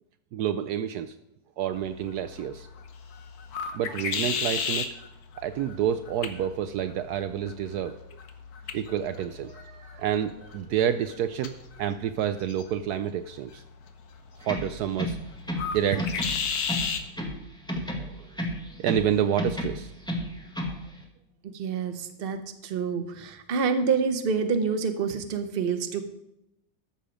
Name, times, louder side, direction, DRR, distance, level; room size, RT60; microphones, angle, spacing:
voice 1, 0.3-1.1 1.6-2.7 3.7-4.9 5.4-8.0 8.7-13.6 14.4-15.2 15.7-16.1 18.0-18.3 18.7-19.9, right 9 dB, 75° right, 9 dB, 1.0 m, -29 dB
sound 1, 1.7-17.1, left 6 dB, 65° left, 1.4 m, -36 dB
sound 2, 14.4-15.7 16.0-17.4 17.7-19.1 19.4-20.8, equal, 5° left, 1.4 m, -32 dB
voice 2, 21.5-26.1, right 5 dB, 40° right, 8 dB, 1.0 m, -27 dB
13.0 x 7.0 x 5.0 m, 0.84 s
omnidirectional pair, 1.8 m